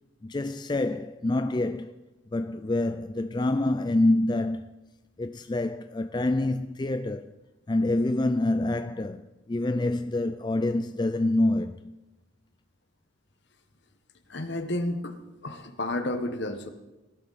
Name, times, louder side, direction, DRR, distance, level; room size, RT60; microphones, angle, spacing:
voice 1, 0.2-1.9 2.3-4.7 5.2-7.3 7.7-12.0, left 2 dB, 20° left, 0.3 m, -26 dB
voice 2, 14.3-15.2 15.4-16.7, left 1 dB, 55° left, 1.3 m, -31 dB
19.0 x 12.0 x 4.2 m
head